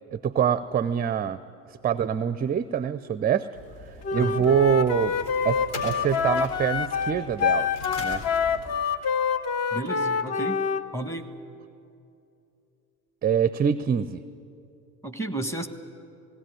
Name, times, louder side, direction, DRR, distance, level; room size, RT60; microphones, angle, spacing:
voice 1, 0.1-1.4 1.8-3.5 3.9-5.1 5.4-7.7 8.0-8.2 13.2-14.2, right 8 dB, 20° right, 15 dB, 0.6 m, -25 dB
sound 1, 3.5-8.8, left 2 dB, 65° left, 4.1 m, -42 dB
Wind instrument woodwind instrument, 4.0-10.8, left 6 dB, 35° left, 1.1 m, -26 dB
voice 2, 4.1-4.4 9.7-10.6 10.9-11.3 15.0-15.7, right 1 dB, 5° left, 7 dB, 1.6 m, -32 dB
18.0 x 17.0 x 9.9 m, 2.6 s
hypercardioid pair, 70°, 45 cm